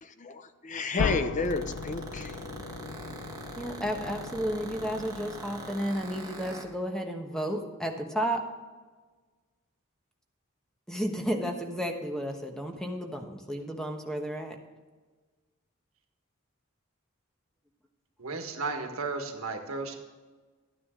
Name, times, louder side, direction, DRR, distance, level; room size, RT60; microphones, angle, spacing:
voice 1, 0.0-2.4 18.5-18.7, left 3 dB, 35° left, 10 dB, 0.6 m, -32 dB
sound 1, 1.0-5.7, left 5 dB, 80° left, 0.5 m, -36 dB
sound 2, 1.4-6.7, right 2 dB, 20° right, 1.5 m, -42 dB
voice 2, 3.6-8.4 10.9-14.6, equal, 5° left, 3 dB, 1.1 m, -32 dB
voice 3, 18.2-20.0, right 3 dB, 90° right, 5 dB, 1.5 m, -34 dB
12.0 x 9.6 x 3.7 m, 1.3 s
head